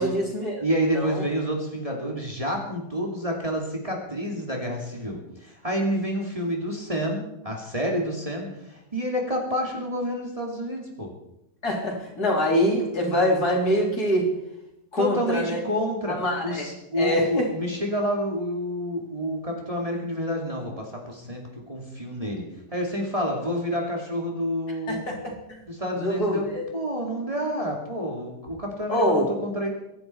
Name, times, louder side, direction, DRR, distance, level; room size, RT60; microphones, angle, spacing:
voice 1, 0.0-0.6 0.9-1.3 11.6-14.3 14.9-15.6 16.1-16.7 17.0-17.5 24.9-25.2 25.5-25.6 26.0-26.7 28.9-29.3, equal, 65° left, -1 dB, 4.3 m, -24 dB
voice 2, 0.6-11.1 15.0-16.2 16.4-22.4 22.7-25.0 25.7-29.7, equal, 20° right, -1 dB, 2.8 m, -29 dB
25.0 x 11.0 x 4.6 m, 0.88 s
omnidirectional pair, 1.8 m